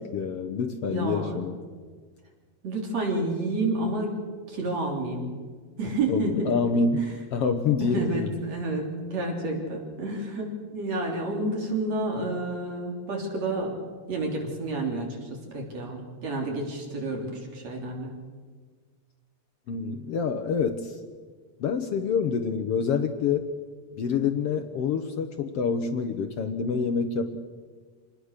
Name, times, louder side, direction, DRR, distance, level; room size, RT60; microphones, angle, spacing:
voice 1, 0.1-1.6 6.1-8.3 19.7-21.0 21.6-23.5 24.0-27.4, left 5 dB, 65° left, 7 dB, 1.8 m, -27 dB
voice 2, 0.9-1.4 2.6-4.1 4.5-5.3 5.8-6.5 7.0-7.1 7.8-13.8 14.1-18.1, right 2 dB, 60° right, 0 dB, 4.7 m, -30 dB
26.0 x 20.0 x 6.6 m, 1.5 s
omnidirectional pair, 3.4 m